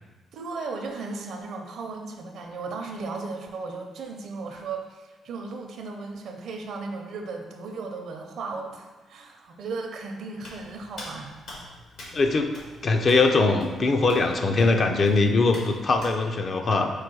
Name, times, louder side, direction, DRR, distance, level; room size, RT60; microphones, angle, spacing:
voice 1, 0.3-11.4, right 3 dB, 70° right, 3 dB, 0.6 m, -36 dB
Hands, 10.4-16.1, left 1 dB, 75° left, 1.5 m, -45 dB
voice 2, 12.1-12.5 12.8-16.9, left 3 dB, 45° left, 4 dB, 0.4 m, -21 dB
4.6 x 2.3 x 4.6 m, 1.2 s
cardioid pair, 90°, 0 cm